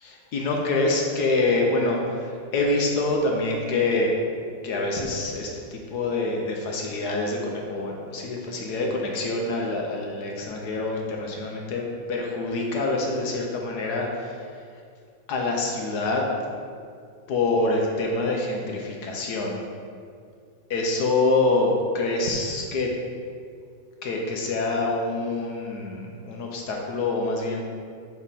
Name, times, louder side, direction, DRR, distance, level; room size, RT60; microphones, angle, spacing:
voice 1, 0.0-4.2 4.6-11.8 12.1-14.4 15.3-16.3 17.3-19.6 20.7-22.9 24.0-27.6, left 2 dB, 65° left, 0 dB, 1.0 m, -26 dB
7.1 x 3.6 x 4.1 m, 2.2 s
omnidirectional pair, 2.2 m